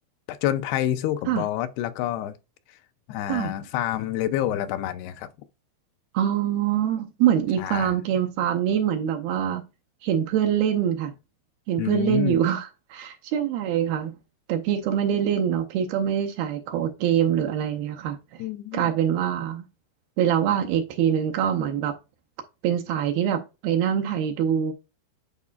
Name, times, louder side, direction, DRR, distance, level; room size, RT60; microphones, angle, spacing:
voice 1, 0.3-2.3 3.1-5.3 7.6-7.9 11.8-12.4 18.4-18.9, left 12 dB, 80° left, 2.5 m, -28 dB
voice 2, 6.1-9.6 10.0-11.1 11.7-14.1 14.5-18.2 18.7-19.6 20.2-21.9 22.6-24.7, right 9 dB, 80° right, 2.4 m, -24 dB
11.0 x 4.1 x 2.4 m
omnidirectional pair, 4.8 m